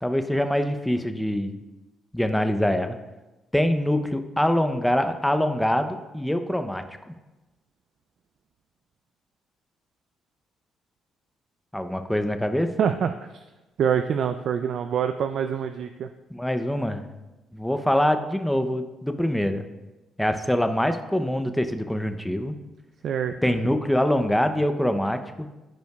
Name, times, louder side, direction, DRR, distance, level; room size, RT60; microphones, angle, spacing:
voice 1, 0.0-1.6 2.1-3.0 3.5-6.8 11.7-12.7 16.3-17.0 17.5-19.7 20.2-22.6 23.4-25.5, left 1 dB, 5° left, 8 dB, 0.6 m, -24 dB
voice 2, 12.8-13.2 13.8-16.1 23.0-23.3, right 7 dB, 65° right, 8 dB, 0.3 m, -25 dB
14.0 x 5.1 x 2.3 m, 1.1 s
cardioid pair, 90°, 0 cm